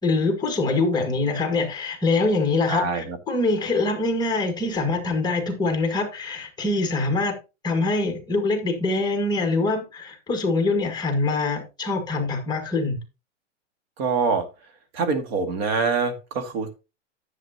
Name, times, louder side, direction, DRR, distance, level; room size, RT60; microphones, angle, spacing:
voice 1, 0.0-7.3 7.6-13.0, left 3 dB, 10° left, 1.9 m, -24 dB
voice 2, 2.7-3.2 14.0-14.5 14.9-16.8, right 4 dB, 50° right, 2.2 m, -25 dB
11.0 x 7.8 x 2.9 m
hypercardioid pair, 145°, 37 cm